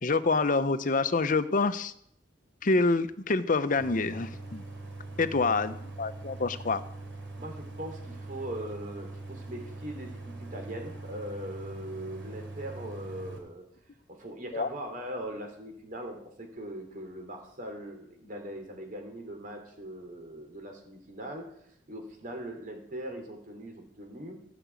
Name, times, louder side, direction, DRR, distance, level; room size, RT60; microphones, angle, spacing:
voice 1, 0.0-1.9 2.6-4.6 5.2-6.8 14.5-14.7, left 3 dB, 45° left, 12 dB, 0.7 m, -27 dB
Idling, 3.8-13.4, right 2 dB, 85° right, 3.5 m, -42 dB
voice 2, 7.4-13.7 14.1-21.5 21.9-24.4, right 1 dB, 50° right, 3 dB, 3.1 m, -40 dB
15.0 x 6.1 x 8.2 m, 0.66 s
head